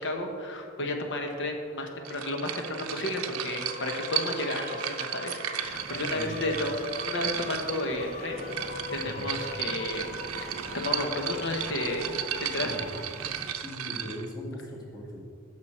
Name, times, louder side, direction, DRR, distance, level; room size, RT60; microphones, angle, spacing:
voice 1, 0.0-8.4 8.9-10.0 10.4-12.7, left 1 dB, 60° left, 3 dB, 1.1 m, -32 dB
sound 1, 2.1-14.3, right 10 dB, 80° right, 0.6 m, -35 dB
sound 2, 3.5-13.1, left 4 dB, 40° left, 0.5 m, -41 dB
sound 3, 5.6-13.5, right 3 dB, 30° right, 0.5 m, -45 dB
voice 2, 6.0-6.4 9.0-9.2 12.6-12.9 13.5-15.2, equal, 20° left, -3 dB, 1.8 m, -40 dB
11.5 x 6.3 x 4.4 m, 2.3 s
head